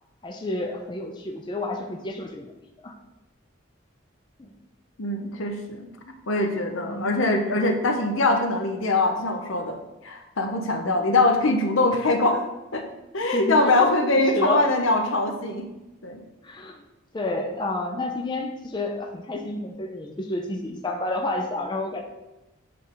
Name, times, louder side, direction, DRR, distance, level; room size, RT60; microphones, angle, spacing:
voice 1, 0.2-2.5 2.8-2.9 4.4-4.5 6.8-7.1 10.8-11.1 13.3-13.9 14.3-14.7 16.4-16.8 17.1-22.0, left 2 dB, 20° left, 2 dB, 0.4 m, -30 dB
voice 2, 5.0-9.8 10.0-12.4 12.7-12.9 13.1-15.7 16.0-16.2, left 2 dB, 75° left, 4 dB, 0.8 m, -23 dB
7.6 x 3.4 x 3.8 m, 0.98 s
head